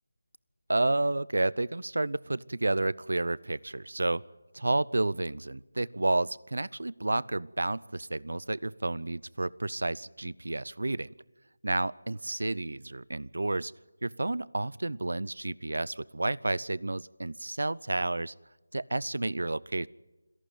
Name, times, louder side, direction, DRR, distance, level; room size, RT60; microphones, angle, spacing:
voice 1, 0.7-4.2 4.5-11.1 11.6-13.7 14.0-18.3 18.7-19.9, right 2 dB, 85° right, 23 dB, 0.6 m, -30 dB
27.0 x 11.5 x 9.2 m, 1.1 s
figure-of-eight pair, 175°, 0 cm